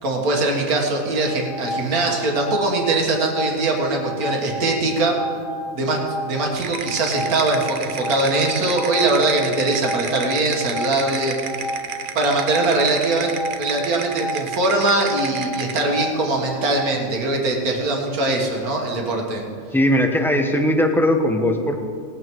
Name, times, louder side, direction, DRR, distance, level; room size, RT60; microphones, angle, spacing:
voice 1, 0.0-5.2 5.7-6.0 6.2-11.5 12.1-19.4, right 2 dB, 70° right, 1 dB, 2.1 m, -21 dB
sound 1, 1.1-16.9, equal, 70° left, 1.4 m, -32 dB
sound 2, 6.6-15.9, right 6 dB, 50° right, 0.6 m, -32 dB
voice 2, 19.7-21.8, left 1 dB, ahead, 3 dB, 0.8 m, -19 dB
19.0 x 8.8 x 4.7 m, 2.3 s
omnidirectional pair, 1.6 m